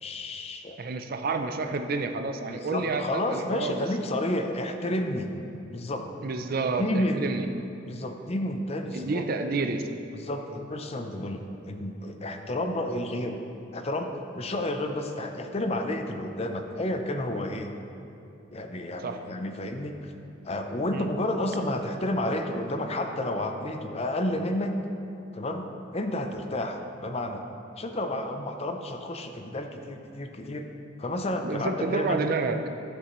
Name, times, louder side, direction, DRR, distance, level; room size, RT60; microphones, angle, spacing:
voice 1, 0.0-0.8 2.5-5.3 5.7-6.1 6.8-7.3 7.9-9.3 10.1-13.4 13.7-17.7 18.5-20.1 20.4-24.8 25.3-27.4 27.8-30.7 31.0-32.2, left 1 dB, 30° left, 5 dB, 0.6 m, -31 dB
voice 2, 0.8-3.9 6.2-7.5 8.9-9.9 19.0-19.2 20.9-21.1 31.4-32.6, right 3 dB, 50° right, 6 dB, 0.5 m, -29 dB
11.5 x 8.2 x 3.1 m, 2.8 s
head